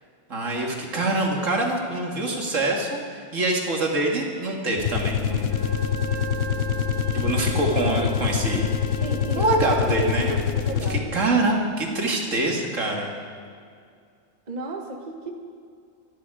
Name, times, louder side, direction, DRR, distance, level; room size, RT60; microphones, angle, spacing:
voice 1, 0.3-3.0 3.3-5.6 7.1-8.7 9.4-10.4 10.9-13.1, right 2 dB, 85° right, 0 dB, 2.4 m, -25 dB
sound 1, 4.7-11.3, left 8 dB, 80° left, 1.1 m, -25 dB
Wind instrument woodwind instrument, 5.4-9.9, right 3 dB, 55° right, 3.4 m, -37 dB
voice 2, 9.0-9.6 10.7-11.0 14.5-15.3, right 3 dB, 35° right, 2 dB, 1.5 m, -34 dB
25.5 x 11.0 x 4.9 m, 2.3 s
omnidirectional pair, 1.3 m